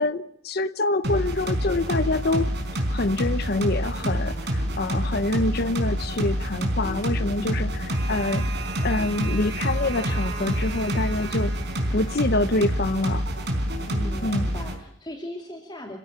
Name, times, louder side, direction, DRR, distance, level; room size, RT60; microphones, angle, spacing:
voice 1, 0.0-2.5 2.9-7.7 8.1-8.4 8.8-11.5 11.9-13.2 14.2-14.5, left 2 dB, 55° left, 0.8 m, -26 dB
sound 1, 1.0-14.8, equal, 55° right, 5.0 m, -27 dB
voice 2, 7.3-8.1 13.9-16.0, equal, 20° left, 2.5 m, -38 dB
26.5 x 16.0 x 7.2 m
head